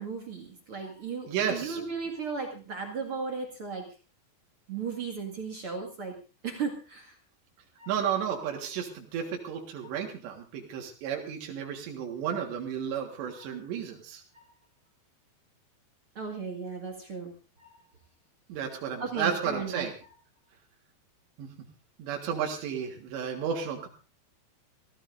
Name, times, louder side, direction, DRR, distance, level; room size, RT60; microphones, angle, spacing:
voice 1, 0.0-3.8 4.7-6.1 6.4-7.1 7.8-7.9 14.4-14.5 16.2-17.3 19.0-19.8, right 5 dB, 45° right, 2 dB, 2.1 m, -35 dB
voice 2, 1.3-1.8 7.9-14.2 18.5-20.0 21.4-21.5 22.0-23.9, right 8 dB, 90° right, 2 dB, 3.9 m, -32 dB
27.5 x 14.5 x 2.6 m, 0.33 s
omnidirectional pair, 4.8 m